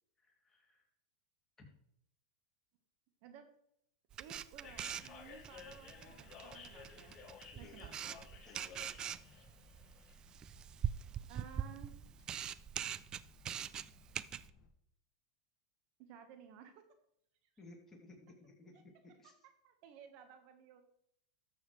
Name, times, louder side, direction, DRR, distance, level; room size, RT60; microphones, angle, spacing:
voice 1, 0.5-0.8 7.5-7.8 8.5-8.8 17.6-18.7 19.2-19.3, left 2 dB, 15° left, 0 dB, 2.7 m, -58 dB
Camera, 4.1-14.5, right 9 dB, 30° right, 0.4 m, -43 dB
voice 2, 4.2-7.1 7.6-8.2 11.3-11.9 16.0-16.8 18.7-18.8 19.2-20.8, right 8 dB, 55° right, 7 dB, 1.3 m, -56 dB
sound 1, 4.6-14.7, left 5 dB, 35° left, 2.1 m, -57 dB
13.0 x 7.2 x 3.2 m, 0.73 s
hypercardioid pair, 110°, 3 cm